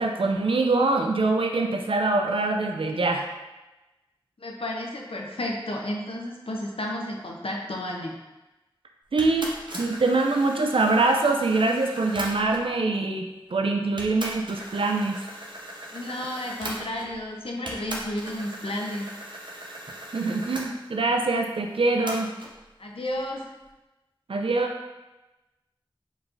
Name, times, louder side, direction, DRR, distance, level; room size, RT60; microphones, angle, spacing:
voice 1, 0.0-3.2 9.1-9.5 9.8-15.2 20.1-22.3 24.3-24.7, right 3 dB, 75° right, 3 dB, 0.4 m, -24 dB
voice 2, 4.4-8.2 15.9-19.1 22.8-23.4, left 1 dB, 90° left, 0 dB, 0.6 m, -32 dB
sound 1, 9.2-12.7 13.5-13.6 14.0-17.3 17.7-20.7 22.1-22.5, right 1 dB, 60° right, 0.8 m, -38 dB
4.7 x 3.9 x 2.5 m, 1.1 s
wide cardioid pair, 45°, 9 cm